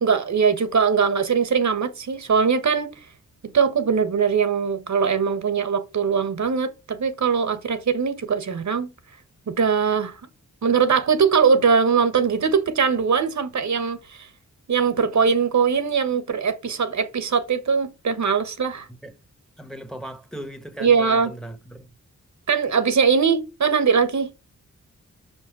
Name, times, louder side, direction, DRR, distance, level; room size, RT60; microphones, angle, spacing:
voice 1, 0.0-2.9 3.5-8.9 9.5-10.2 10.6-14.3 14.7-18.9 20.8-21.3 22.5-24.3, right 6 dB, 60° right, 1.1 m, -21 dB
voice 2, 19.6-21.9, right 1 dB, ahead, 1.1 m, -38 dB
6.1 x 5.5 x 6.1 m
wide cardioid pair, 100°, 32 cm